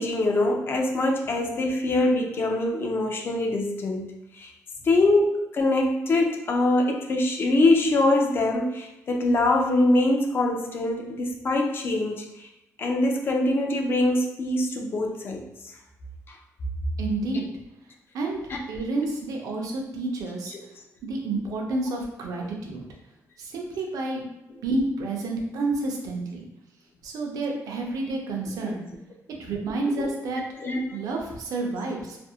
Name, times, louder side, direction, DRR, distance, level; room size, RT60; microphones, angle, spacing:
voice 1, 0.0-4.1 4.4-4.5 4.8-12.5 12.8-15.4 16.3-16.4 18.5-18.6 28.5-28.7 30.0-30.1 30.6-31.0, left 2 dB, 40° left, 2 dB, 0.4 m, -23 dB
voice 2, 17.0-17.5 18.1-18.4 18.7-20.5 21.0-22.8 23.4-24.3 24.6-26.5 27.0-28.9 29.4-30.4 30.9-32.2, right 2 dB, 70° right, 0 dB, 0.5 m, -29 dB
2.5 x 2.0 x 2.7 m, 0.90 s
cardioid pair, 135°, 6 cm